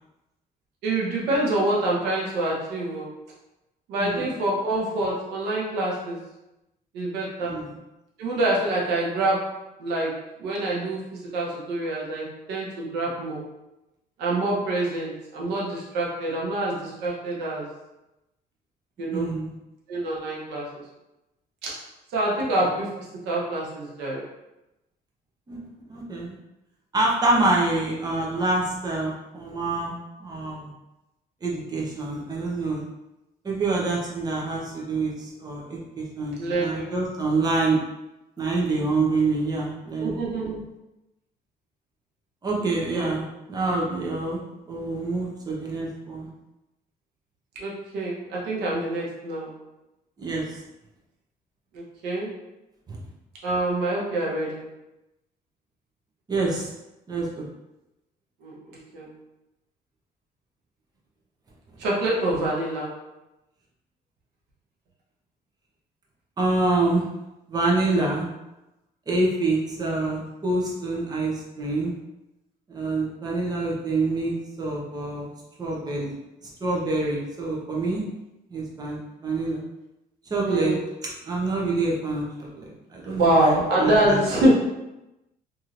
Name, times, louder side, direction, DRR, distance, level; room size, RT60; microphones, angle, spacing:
voice 1, 0.8-3.1 3.9-6.2 6.9-7.6 8.2-13.5 14.2-17.7 19.0-19.3 19.9-20.8 21.6-21.8 22.1-24.3 36.4-36.9 40.0-40.6 42.9-43.1 47.5-49.6 51.7-52.3 53.4-54.6 58.4-59.1 61.8-63.0 80.4-80.8 83.1-84.5, right 1 dB, 90° right, -4 dB, 0.9 m, -26 dB
voice 2, 7.4-7.7 19.1-19.5 25.5-26.3 26.9-30.7 31.4-32.8 33.4-37.8 38.4-40.2 42.4-44.4 44.7-46.3 50.2-50.6 52.9-53.0 56.3-56.7 57.1-57.5 66.4-67.0 67.5-68.3 69.1-71.9 72.7-75.3 75.6-76.2 76.6-78.0 78.5-79.6 80.3-80.7 81.2-84.2, right 2 dB, 25° right, -3 dB, 0.7 m, -26 dB
3.0 x 2.8 x 2.5 m, 0.94 s
cardioid pair, 110°, 17 cm